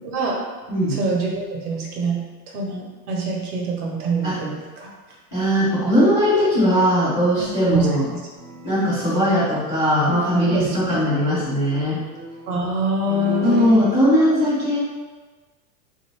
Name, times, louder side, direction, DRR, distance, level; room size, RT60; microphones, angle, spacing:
voice 1, 0.0-0.4 0.9-2.2 2.5-4.9 7.4-8.2 10.5-11.0 12.5-13.9, right 1 dB, 60° right, -1 dB, 1.0 m, -25 dB
voice 2, 5.3-8.0 8.6-12.0 13.4-14.8, equal, 15° left, -19 dB, 0.3 m, -19 dB
sound 1, 8.3-13.7, right 3 dB, 40° right, 0.9 m, -37 dB
3.9 x 2.6 x 3.1 m, 1.3 s
supercardioid pair, 160°, 50 cm